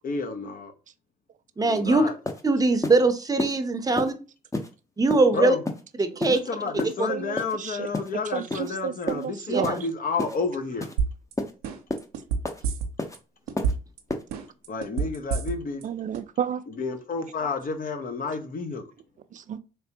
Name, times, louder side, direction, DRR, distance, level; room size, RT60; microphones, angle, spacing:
voice 1, 0.0-0.7 1.6-2.1 5.3-5.6 6.3-10.9 14.7-15.8 16.8-18.8, left 4 dB, 45° left, 0.9 m, -30 dB
voice 2, 1.6-2.0 2.4-4.1 5.0-5.6 6.0-6.4 7.0-7.1 9.5-9.8, right 3 dB, 20° right, 0.7 m, -22 dB
sound 1, 1.8-1.9 2.3-2.4 2.8-3.0 3.4-3.5 4.0-4.1 4.5-4.7 5.1-5.3 5.7-5.8 6.2-6.4 6.8-6.9 7.4-7.5 7.9-8.1 8.5-8.7 9.1-9.3 9.6-9.8 10.2-10.4 10.8-11.0 11.4-11.5 11.9-12.1 12.5-12.6 13.0-13.2 13.6-13.7 14.1-14.2, left 2 dB, 15° left, 0.8 m, -30 dB
voice 3, 7.1-9.7 15.8-16.6 19.3-19.6, right 9 dB, 40° right, 0.4 m, -32 dB
sound 2, 11.0-11.3 11.6-13.2 13.5-14.0 14.3-15.8 16.1-16.2, right 5 dB, 85° right, 0.6 m, -27 dB
3.3 x 3.3 x 2.8 m
hypercardioid pair, 55°, 20 cm